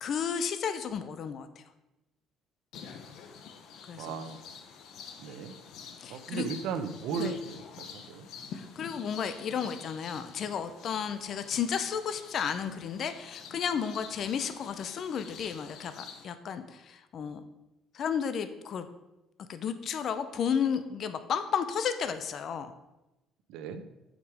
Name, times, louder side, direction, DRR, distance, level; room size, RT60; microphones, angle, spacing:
voice 1, 0.0-1.6 3.9-4.2 5.3-5.4 6.0-6.5 7.2-7.4 8.5-17.4 17.9-18.9 19.5-22.7, left 7 dB, 45° left, 10 dB, 0.6 m, -33 dB
sound 1, 2.7-16.2, left 6 dB, 60° left, 0.9 m, -47 dB
voice 2, 3.9-4.5 5.2-5.5 6.1-8.3 23.5-23.8, right 6 dB, 80° right, 9 dB, 0.8 m, -36 dB
7.9 x 5.2 x 4.9 m, 0.96 s
cardioid pair, 145°, 0 cm